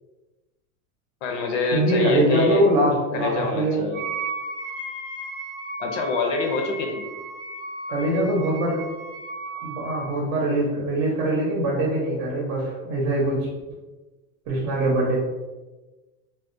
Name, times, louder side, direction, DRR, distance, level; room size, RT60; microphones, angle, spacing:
voice 1, 1.2-2.7 3.1-4.0 5.8-7.0, left 3 dB, 65° left, 3 dB, 0.5 m, -26 dB
voice 2, 1.7-3.9 7.9-8.9 9.5-13.5 14.5-15.2, right 1 dB, 65° right, -3 dB, 0.7 m, -23 dB
Wind instrument woodwind instrument, 3.9-10.2, right 2 dB, 25° right, 0.6 m, -35 dB
2.3 x 2.1 x 2.5 m, 1.2 s
supercardioid pair, 150°, 41 cm